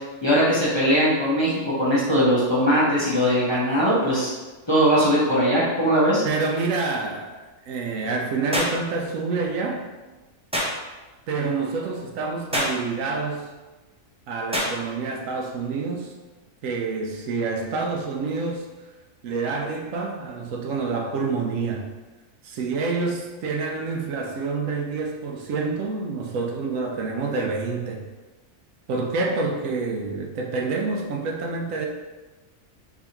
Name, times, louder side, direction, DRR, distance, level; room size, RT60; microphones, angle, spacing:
voice 1, 0.2-4.3 4.7-6.2, equal, 20° left, -8 dB, 1.0 m, -20 dB
voice 2, 6.2-7.3 7.6-9.8 11.3-13.5 14.3-16.1 16.6-18.7 19.2-21.9 22.4-28.1 28.9-31.9, right 4 dB, 75° right, 1 dB, 1.0 m, -27 dB
sound 1, 8.5-8.8 10.5-10.8 12.5-12.8 14.5-14.8, equal, 5° right, 0.7 m, -25 dB
4.6 x 3.4 x 2.9 m, 1.2 s
omnidirectional pair, 1.4 m